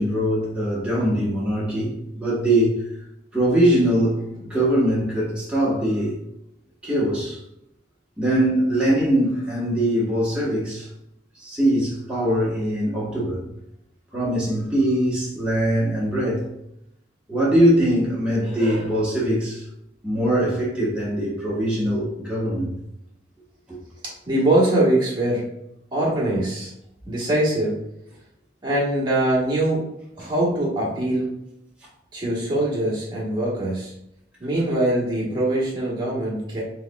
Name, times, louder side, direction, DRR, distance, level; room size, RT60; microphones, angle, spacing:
voice 1, 0.0-2.7 3.3-6.2 6.8-7.4 8.2-10.9 11.3-13.4 14.1-16.5 17.3-19.6 20.0-22.7 23.7-23.8 30.2-30.3, right 1 dB, 5° right, 1.2 m, -22 dB
voice 2, 24.0-25.4 25.9-26.7 27.1-27.9 28.6-29.8 30.2-31.3 32.1-33.9 34.4-36.6, right 1 dB, 25° right, 1.3 m, -22 dB
4.7 x 4.1 x 2.3 m
head